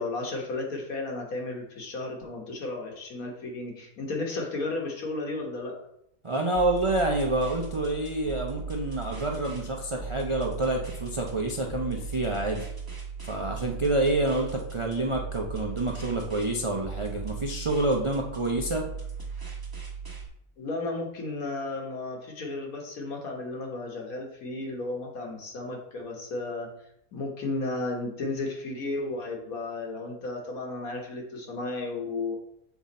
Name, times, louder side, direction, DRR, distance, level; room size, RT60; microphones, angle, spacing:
voice 1, 0.0-5.8 20.6-26.7 27.1-32.4, left 2 dB, 70° left, 1 dB, 1.8 m, -33 dB
voice 2, 6.2-12.7 13.2-18.9, right 2 dB, 50° right, 0 dB, 0.3 m, -28 dB
sound 1, 6.6-20.3, right 6 dB, 15° right, 1.0 m, -38 dB
7.1 x 3.9 x 4.2 m, 0.76 s
omnidirectional pair, 1.6 m